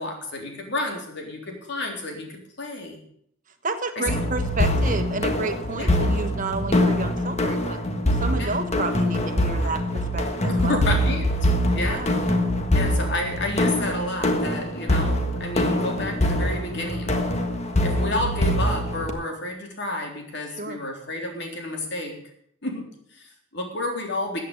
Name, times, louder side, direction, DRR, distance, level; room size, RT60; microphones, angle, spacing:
voice 1, 0.0-3.0 4.0-4.2 5.7-5.9 8.4-8.5 10.5-11.3 11.7-12.0 12.7-17.2 17.8-22.1 22.6-24.4, left 2 dB, 60° left, 2 dB, 3.7 m, -31 dB
voice 2, 3.6-7.8 8.2-10.8 11.8-12.1 20.6-20.8, right 2 dB, 40° right, 7 dB, 1.3 m, -30 dB
sound 1, 4.1-19.1, left 1 dB, 35° left, 1.5 m, -24 dB
14.5 x 8.7 x 7.1 m, 0.69 s
head